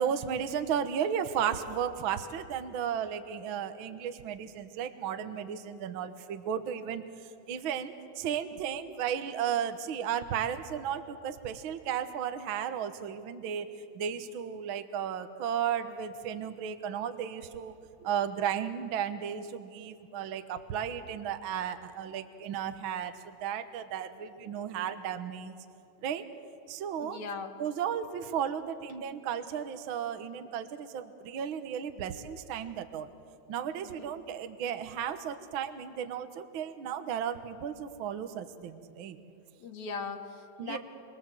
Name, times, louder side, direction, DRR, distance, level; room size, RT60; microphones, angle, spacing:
voice 1, 0.0-7.0 7.5-13.7 13.9-25.6 26.0-26.3 26.7-27.2 27.6-33.1 33.5-39.2 40.6-40.8, right 8 dB, 60° right, 9 dB, 1.4 m, -34 dB
voice 2, 27.0-27.5 33.8-34.1 39.6-40.8, left 5 dB, 70° left, 5 dB, 2.7 m, -39 dB
26.5 x 23.5 x 7.7 m, 2.5 s
omnidirectional pair, 3.5 m